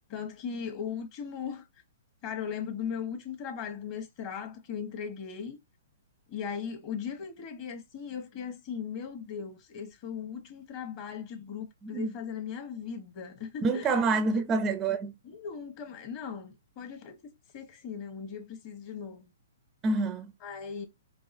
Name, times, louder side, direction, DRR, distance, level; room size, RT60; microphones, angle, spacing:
voice 1, 0.1-1.6 2.2-5.6 6.3-14.5 15.2-19.3 20.4-20.9, left 7 dB, 35° left, 1.2 m, -38 dB
voice 2, 11.8-12.1 13.6-15.1 19.8-20.3, right 3 dB, 20° right, 0.4 m, -27 dB
4.7 x 2.3 x 2.6 m
hypercardioid pair, 140°, 0 cm